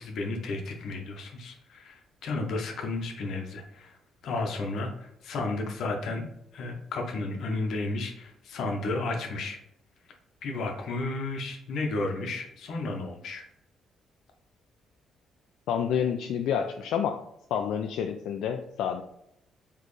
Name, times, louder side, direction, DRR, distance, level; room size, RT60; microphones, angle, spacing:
voice 1, 0.0-4.0 4.2-6.2 6.5-9.6 10.4-13.4, left 2 dB, 60° left, 3 dB, 0.9 m, -33 dB
voice 2, 15.7-17.2 17.5-19.0, left 8 dB, 80° left, 5 dB, 0.3 m, -28 dB
4.2 x 3.1 x 3.1 m, 0.78 s
cardioid pair, 155°, 0 cm